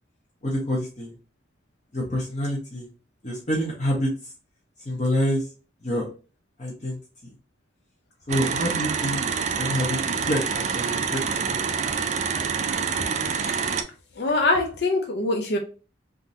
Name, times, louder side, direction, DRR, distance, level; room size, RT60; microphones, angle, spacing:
voice 1, 0.4-1.1 1.9-2.9 3.2-4.1 4.8-5.5 5.8-6.0 6.6-7.0 8.3-9.3 9.6-11.9, equal, 40° left, -4 dB, 0.9 m, -27 dB
sound 1, 8.3-13.8, right 6 dB, 40° right, 0.3 m, -26 dB
voice 2, 13.3-13.7 14.2-15.6, left 2 dB, 60° left, 3 dB, 0.5 m, -24 dB
3.6 x 2.6 x 2.7 m, 0.36 s
head